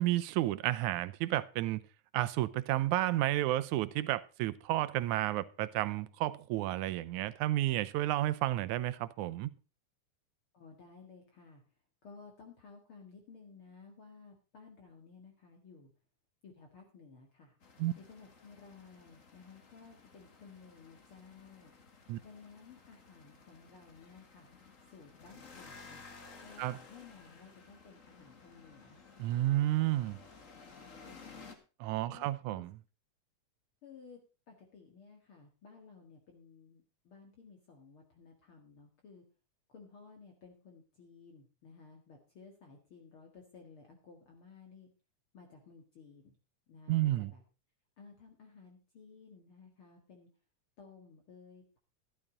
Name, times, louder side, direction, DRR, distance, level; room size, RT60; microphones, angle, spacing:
voice 1, 0.0-1.8 2.1-9.5 17.8-17.9 22.1-22.2 26.6-26.8 29.2-30.2 31.8-32.7 46.9-47.3, right 15 dB, 85° right, 2.2 m, -31 dB
voice 2, 10.5-11.6 12.0-15.9 16.4-17.6 18.0-21.7 22.2-24.5 24.9-26.1 26.4-29.0 29.5-29.9 31.0-31.5 32.1-32.6 33.8-39.2 39.7-44.9 45.3-46.4 46.7-47.4 48.0-50.3 50.8-51.8, left 5 dB, 50° left, 2.4 m, -56 dB
sound 1, 17.6-31.5, left 4 dB, 35° left, 1.6 m, -56 dB
12.5 x 12.0 x 3.9 m
omnidirectional pair, 3.4 m